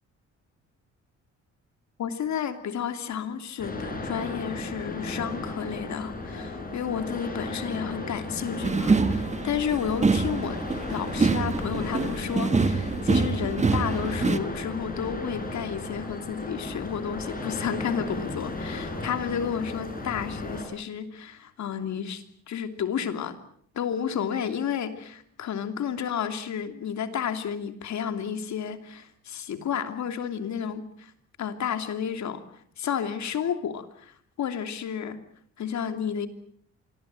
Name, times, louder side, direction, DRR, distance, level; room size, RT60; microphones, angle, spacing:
voice 1, 2.0-10.6 10.9-23.4 23.7-31.1 31.4-32.4 32.8-35.2 35.6-36.3, left 8 dB, 65° left, 8 dB, 2.9 m, -31 dB
sound 1, 3.6-20.6, left 2 dB, 30° left, 7.3 m, -35 dB
sound 2, 8.6-14.4, right 4 dB, 25° right, 1.5 m, -25 dB
26.0 x 21.5 x 7.7 m, 0.63 s
cardioid pair, 90°, 30 cm